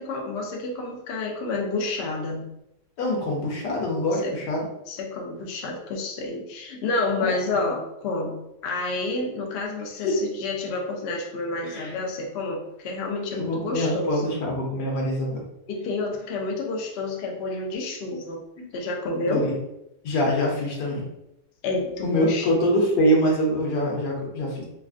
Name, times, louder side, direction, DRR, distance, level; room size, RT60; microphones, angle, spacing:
voice 1, 0.0-2.5 4.1-4.3 4.9-14.4 15.7-18.4 18.7-19.5 21.6-22.5, left 3 dB, 65° left, 0 dB, 0.6 m, -29 dB
voice 2, 3.0-4.6 7.2-7.5 10.0-10.2 11.7-11.9 13.3-15.4 18.6-18.7 19.2-19.5 20.0-21.0 22.0-24.7, equal, 80° left, -2 dB, 1.4 m, -24 dB
3.3 x 2.4 x 2.4 m, 0.86 s
omnidirectional pair, 1.7 m